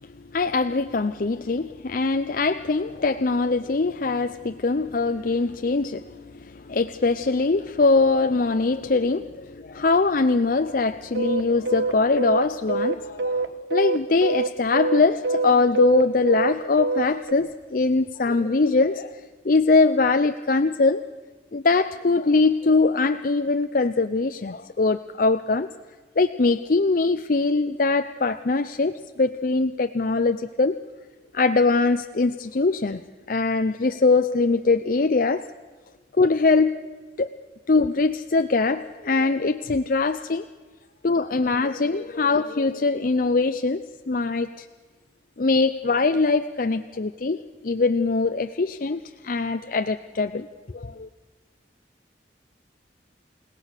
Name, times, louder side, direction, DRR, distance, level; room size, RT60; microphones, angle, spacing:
voice 1, 0.1-21.0 21.5-25.7 26.2-30.8 31.3-33.0 33.3-35.5 36.1-36.7 37.2-37.3 37.7-40.5 41.0-44.7 45.4-50.5 50.7-51.1, left 3 dB, 50° left, 8 dB, 0.6 m, -22 dB
sound 1, 11.1-17.3, right 3 dB, 75° right, 1.2 m, -25 dB
29.5 x 17.5 x 6.6 m, 1.4 s
head